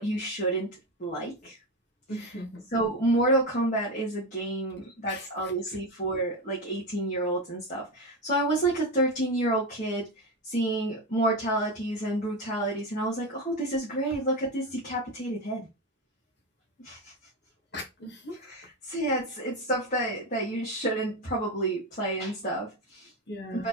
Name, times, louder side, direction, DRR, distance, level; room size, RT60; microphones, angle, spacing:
voice 1, 0.0-1.6 2.2-2.3 2.7-10.1 10.4-15.7 16.8-17.1 18.4-23.1 23.5-23.7, right 1 dB, 35° left, 1.8 m, -29 dB
voice 2, 2.1-2.6 5.1-5.5 17.7-18.4 23.3-23.7, equal, 55° left, 1.5 m, -38 dB
4.4 x 3.8 x 3.0 m
head